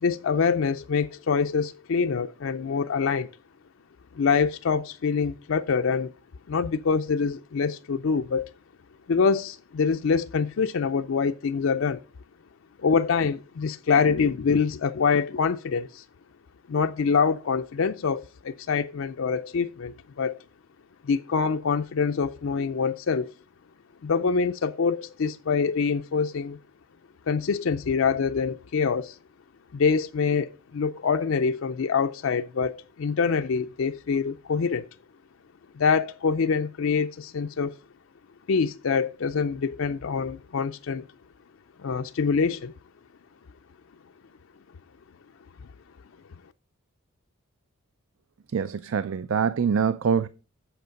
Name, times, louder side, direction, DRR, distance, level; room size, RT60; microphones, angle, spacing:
voice 1, 0.0-3.3 4.1-6.1 6.5-8.5 9.1-12.0 12.8-16.0 16.7-20.4 21.0-23.3 24.0-26.6 27.3-29.2 29.7-34.9 35.7-37.8 38.5-41.1 41.8-42.7, left 5 dB, 65° left, 0.4 m, -25 dB
voice 2, 48.5-50.3, right 6 dB, 65° right, 0.4 m, -24 dB
8.1 x 7.1 x 5.1 m
head